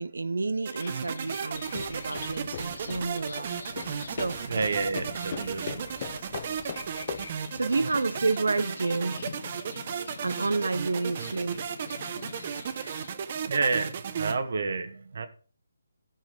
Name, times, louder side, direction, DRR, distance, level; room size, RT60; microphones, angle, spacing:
voice 1, 0.0-3.5 3.8-4.4 7.5-9.2 10.2-11.6, right 3 dB, 85° right, 0.7 m, -30 dB
sound 1, 0.7-13.1, left 4 dB, 65° left, 1.3 m, -44 dB
sound 2, 0.7-14.4, right 7 dB, 35° right, 1.0 m, -35 dB
sound 3, 1.5-7.4, left 9 dB, 35° left, 0.5 m, -41 dB
voice 2, 4.4-5.8 13.5-13.9 14.2-15.3, right 4 dB, 60° right, 1.5 m, -29 dB
13.0 x 6.3 x 5.1 m
hypercardioid pair, 165°, 0 cm